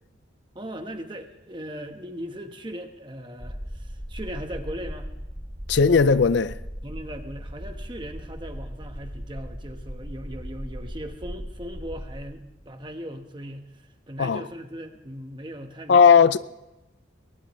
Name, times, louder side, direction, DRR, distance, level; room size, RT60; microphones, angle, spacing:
voice 1, 0.5-5.1 6.8-16.0, equal, 25° right, 1.2 m, -38 dB
sound 1, 3.4-12.9, equal, 5° right, 0.9 m, -38 dB
voice 2, 5.7-6.6 14.2-14.4 15.9-16.4, left 6 dB, 65° left, 0.5 m, -17 dB
21.5 x 19.0 x 3.2 m
head